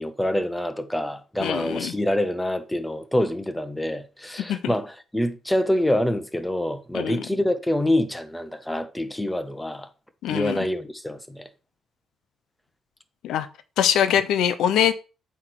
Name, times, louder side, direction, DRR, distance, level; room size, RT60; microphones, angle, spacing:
voice 1, 0.0-9.9 10.3-11.5, left 1 dB, 5° left, 0.6 m, -26 dB
voice 2, 1.4-1.9 4.5-4.7 6.9-7.2 10.2-10.7 13.2-13.5 13.8-14.9, left 9 dB, 80° left, 0.6 m, -23 dB
7.9 x 3.0 x 4.5 m
cardioid pair, 155°, 0 cm